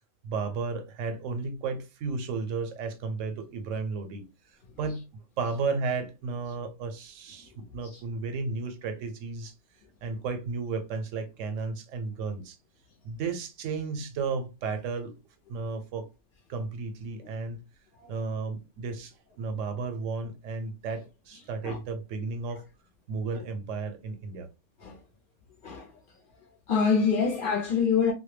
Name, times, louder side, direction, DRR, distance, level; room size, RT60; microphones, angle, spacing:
voice 1, 0.2-5.0 5.4-9.5 10.0-12.6 13.0-15.2 15.5-16.1 16.5-17.6 18.1-22.6 23.1-24.5, right 4 dB, 90° right, 0.9 m, -33 dB
voice 2, 25.6-26.0 26.7-28.1, left 6 dB, 60° left, 0.6 m, -26 dB
2.2 x 2.1 x 3.1 m
omnidirectional pair, 1.3 m